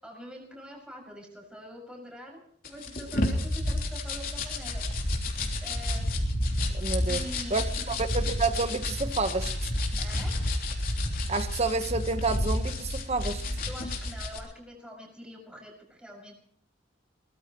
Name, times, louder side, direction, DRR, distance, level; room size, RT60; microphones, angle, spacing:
voice 1, 0.0-2.4 2.7-5.1 5.6-6.2 7.1-8.0 10.0-10.3 13.6-16.3, equal, 5° right, -1 dB, 6.4 m, -45 dB
sound 1, 2.6-14.4, left 1 dB, 50° left, 3.4 m, -30 dB
voice 2, 6.7-7.2 7.5-9.5 11.3-13.4, right 3 dB, 35° right, 9 dB, 1.2 m, -29 dB
23.0 x 19.5 x 3.1 m, 0.66 s
head